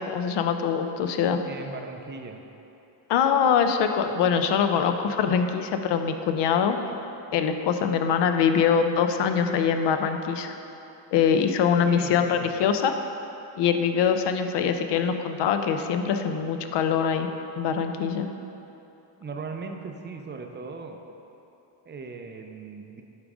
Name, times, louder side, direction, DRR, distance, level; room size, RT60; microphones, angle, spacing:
voice 1, 0.0-1.4 3.1-6.8 7.3-10.6 11.1-12.9 13.6-17.3 17.6-18.3, left 7 dB, 60° left, 7 dB, 0.6 m, -23 dB
voice 2, 1.4-2.4 11.8-12.5 19.2-21.0 21.9-23.0, right 4 dB, 25° right, 4 dB, 0.4 m, -38 dB
8.7 x 3.7 x 4.8 m, 2.9 s
cardioid pair, 110°, 48 cm